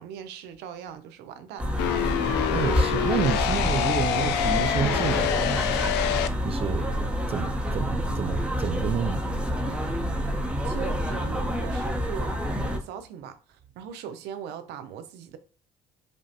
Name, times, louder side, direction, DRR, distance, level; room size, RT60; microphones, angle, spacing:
voice 1, 0.0-1.7 10.6-12.4 12.7-15.4, right 8 dB, 85° right, 0.6 m, -40 dB
sound 1, 1.6-12.8, equal, 5° right, 0.9 m, -28 dB
sound 2, 1.8-6.3, left 11 dB, 85° left, 0.4 m, -26 dB
voice 2, 2.5-6.1 6.4-6.9 7.3-9.2, right 7 dB, 35° right, 0.3 m, -30 dB
5.2 x 2.5 x 2.7 m
cardioid pair, 110°, 17 cm